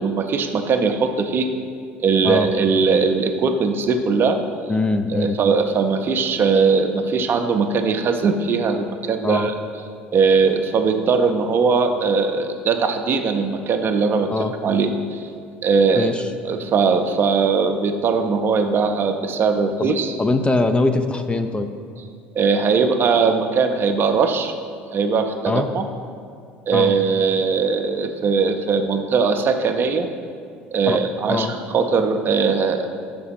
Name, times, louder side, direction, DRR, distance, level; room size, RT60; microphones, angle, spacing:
voice 1, 0.0-1.5 2.0-4.4 5.1-9.5 10.1-14.3 14.6-15.3 15.6-16.1 16.4-20.1 22.3-24.5 24.9-25.9 26.7-30.1 30.7-32.8, right 5 dB, 40° right, 6 dB, 0.6 m, -20 dB
voice 2, 4.7-5.4 9.2-9.5 14.3-14.5 15.9-16.2 19.8-21.7 25.5-25.7 26.7-26.9 30.9-31.0 31.3-31.5, left 2 dB, 20° left, 7 dB, 0.4 m, -22 dB
5.7 x 5.2 x 5.7 m, 2.2 s
figure-of-eight pair, 60°, 6 cm